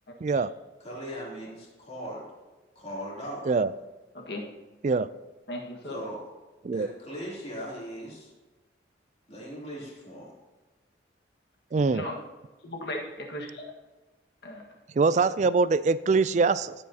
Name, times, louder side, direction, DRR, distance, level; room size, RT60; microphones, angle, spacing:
voice 1, 0.2-0.5 3.5-3.7 4.8-5.1 6.6-6.9 11.7-12.1 14.9-16.7, right 4 dB, 40° right, 16 dB, 0.3 m, -23 dB
voice 2, 0.8-2.3 2.7-3.5 5.8-6.2 6.7-8.3 9.3-10.3, equal, 35° left, -5 dB, 3.1 m, -39 dB
voice 3, 4.1-4.5 5.5-6.0 11.9-12.2 12.6-13.7 14.4-14.7, left 1 dB, 60° left, 1 dB, 1.6 m, -36 dB
14.0 x 8.6 x 2.8 m, 1.2 s
head